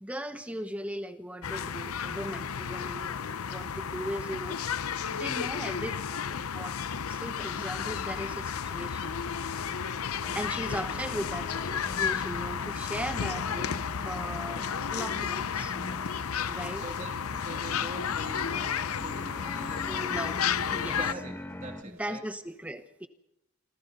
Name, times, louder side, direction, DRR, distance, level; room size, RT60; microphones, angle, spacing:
voice 1, 0.0-4.6 5.1-6.8 7.1-9.2 9.6-9.8 10.3-14.6 14.9-15.7 16.5-16.8 19.9-20.4 20.7-21.0 22.0-23.1, equal, 5° right, 8 dB, 1.0 m, -38 dB
sound 1, 1.4-21.1, left 7 dB, 90° left, 0.7 m, -32 dB
sound 2, 4.2-22.0, right 1 dB, 65° right, 2.9 m, -58 dB
sound 3, 9.5-21.8, left 1 dB, 10° left, 1.3 m, -44 dB
voice 2, 16.4-20.3 20.8-22.2, right 2 dB, 35° right, 3 dB, 2.6 m, -44 dB
28.0 x 26.0 x 4.1 m, 0.85 s
head